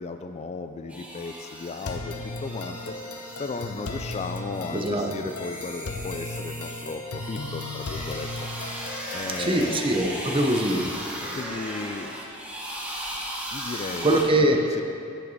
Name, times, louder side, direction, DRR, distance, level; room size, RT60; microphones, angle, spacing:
voice 1, 0.0-2.2 2.4-2.9 3.4-8.5 9.1-9.8 11.2-12.2 13.5-14.2 14.7-14.8, left 4 dB, 30° left, 8 dB, 0.3 m, -35 dB
sound 1, 0.9-14.2, equal, 5° right, 1.1 m, -37 dB
sound 2, 1.8-9.8, left 2 dB, 80° left, 0.8 m, -36 dB
voice 2, 4.7-5.1 9.4-10.9 14.0-14.6, right 1 dB, 25° right, 4 dB, 0.7 m, -22 dB
15.0 x 5.8 x 4.1 m, 2.6 s
head